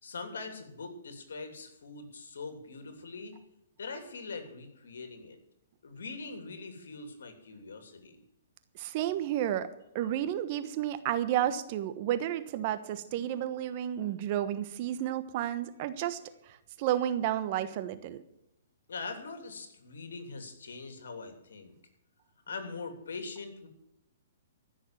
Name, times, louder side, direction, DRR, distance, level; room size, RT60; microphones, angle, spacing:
voice 1, 0.0-3.4 3.8-5.4 5.8-8.2 18.9-21.7 22.5-23.7, left 4 dB, 80° left, 6 dB, 3.0 m, -42 dB
voice 2, 8.7-9.7 9.9-18.2, right 11 dB, 45° right, 12 dB, 1.2 m, -31 dB
15.0 x 6.5 x 9.1 m, 0.84 s
hypercardioid pair, 140°, 0 cm